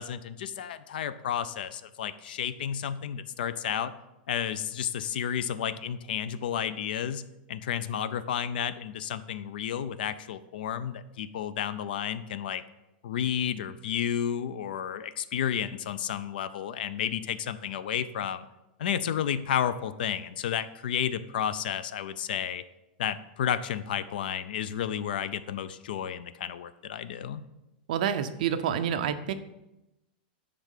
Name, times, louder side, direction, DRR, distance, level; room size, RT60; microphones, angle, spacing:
voice 1, 0.0-3.9 4.3-12.6 13.0-18.5 18.8-22.6 23.0-27.4, left 9 dB, 65° left, 14 dB, 0.5 m, -32 dB
voice 2, 27.9-29.3, right 9 dB, 50° right, 9 dB, 0.6 m, -28 dB
10.0 x 3.7 x 6.5 m, 0.95 s
supercardioid pair, 180°, 5 cm